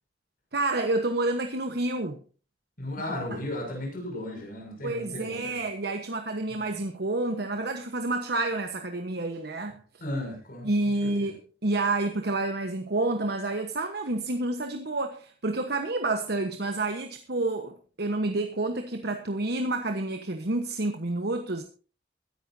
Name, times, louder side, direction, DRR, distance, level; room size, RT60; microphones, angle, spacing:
voice 1, 0.5-2.2 3.0-3.1 4.8-9.8 10.6-21.6, right 2 dB, 60° right, 5 dB, 1.2 m, -29 dB
voice 2, 2.8-5.6 6.5-6.6 10.0-10.7 11.0-11.3, left 1 dB, 50° left, 1 dB, 6.5 m, -35 dB
21.5 x 11.0 x 2.7 m, 0.37 s
head